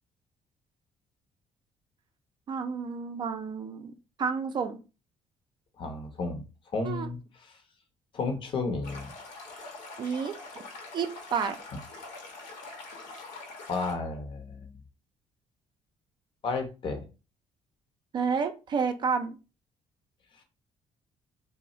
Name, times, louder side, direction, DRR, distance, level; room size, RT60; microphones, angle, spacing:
voice 1, 2.5-3.9 4.2-4.8 6.8-7.1 10.0-10.4 10.9-11.6 18.1-19.4, right 6 dB, 40° right, 0.4 m, -30 dB
voice 2, 5.8-6.4 6.7-7.5 8.1-9.1 13.7-14.7 16.4-17.0, left 3 dB, 45° left, 0.7 m, -32 dB
Stream, 8.8-13.9, left 3 dB, 90° left, 0.9 m, -44 dB
2.3 x 2.0 x 3.7 m
cardioid pair, 130°, 12 cm